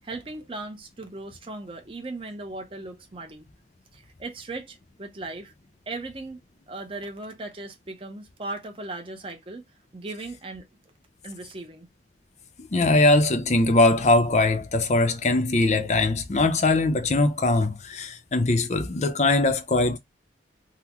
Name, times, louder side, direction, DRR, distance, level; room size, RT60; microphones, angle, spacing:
voice 1, 0.0-3.5 3.9-5.5 5.9-6.4 6.7-9.6 9.9-10.7 11.2-11.9, right 2 dB, 30° right, 0.6 m, -37 dB
voice 2, 12.7-20.0, left 2 dB, 35° left, 0.5 m, -21 dB
3.7 x 2.1 x 2.9 m
head